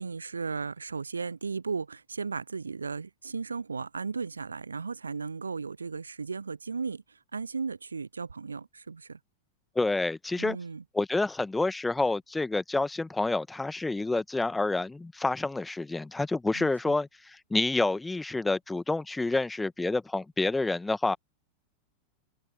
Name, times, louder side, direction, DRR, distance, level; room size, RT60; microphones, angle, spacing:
voice 1, 0.0-9.2 10.4-10.8 16.6-16.9, right 4 dB, 75° right, 0.8 m, -35 dB
voice 2, 9.7-10.6 10.9-21.2, left 2 dB, 10° left, 1.6 m, -28 dB
figure-of-eight pair, 90°, 0 cm